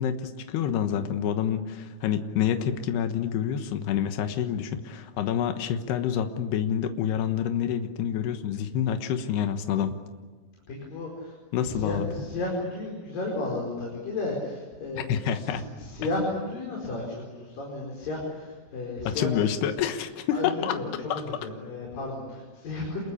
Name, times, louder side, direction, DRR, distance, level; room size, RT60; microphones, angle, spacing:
voice 1, 0.0-10.0 11.5-12.1 15.0-15.7 19.1-20.8 21.1-21.2, left 9 dB, 80° left, 7 dB, 3.3 m, -27 dB
voice 2, 10.7-19.3 20.3-23.0, left 2 dB, 60° left, -2 dB, 6.4 m, -33 dB
28.0 x 22.5 x 8.6 m, 1.4 s
omnidirectional pair, 4.7 m